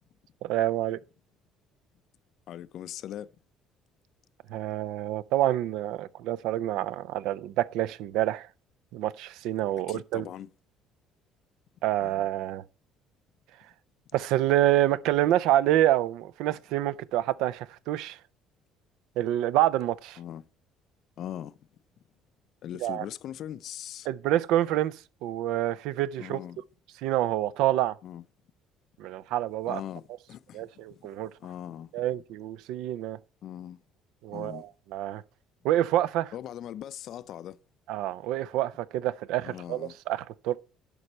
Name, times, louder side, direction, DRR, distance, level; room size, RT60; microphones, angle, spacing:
voice 1, 0.4-1.0 4.5-8.5 8.9-10.2 11.8-12.6 14.1-18.2 19.2-20.2 22.8-23.0 24.1-26.4 27.0-28.0 29.0-29.8 30.5-31.3 31.9-33.2 34.2-35.2 35.6-36.3 37.9-40.6, right 13 dB, 80° right, 0.5 m, -27 dB
voice 2, 2.5-3.3 9.9-10.5 12.0-12.1 20.2-20.5 21.2-21.6 22.6-24.1 26.2-26.6 28.0-28.2 29.7-30.0 30.3-31.0 31.4-31.9 33.4-33.8 34.3-34.6 36.3-37.6 39.4-40.0, left 11 dB, 55° left, 0.4 m, -40 dB
11.0 x 5.3 x 4.3 m
cardioid pair, 135°, 0 cm